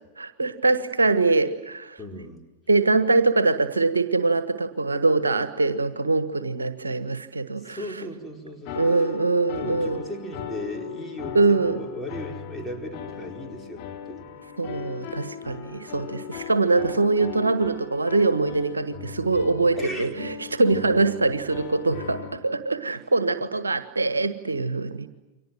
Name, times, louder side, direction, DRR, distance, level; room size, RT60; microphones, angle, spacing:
voice 1, 0.2-2.0 2.7-7.8 8.7-10.0 11.3-11.8 14.6-25.1, right 3 dB, 75° right, 12 dB, 1.4 m, -23 dB
voice 2, 2.0-2.4 7.6-8.8 9.5-14.2 19.8-20.1, equal, 5° left, 0 dB, 4.8 m, -36 dB
sound 1, 8.6-22.4, left 10 dB, 45° left, 4.3 m, -38 dB
29.5 x 24.5 x 7.7 m, 1.1 s
figure-of-eight pair, 90°, 0 cm